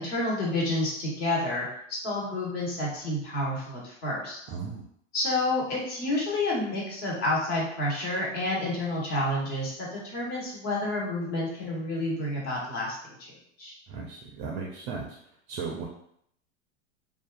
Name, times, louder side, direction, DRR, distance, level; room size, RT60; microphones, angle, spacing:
voice 1, 0.0-1.7 2.0-4.4 5.1-13.7, left 1 dB, 50° left, -4 dB, 1.3 m, -29 dB
voice 2, 4.5-4.8 13.9-15.2 15.5-15.9, right 5 dB, 35° right, 0 dB, 0.4 m, -36 dB
2.5 x 2.4 x 2.3 m, 0.69 s
hypercardioid pair, 105°, 36 cm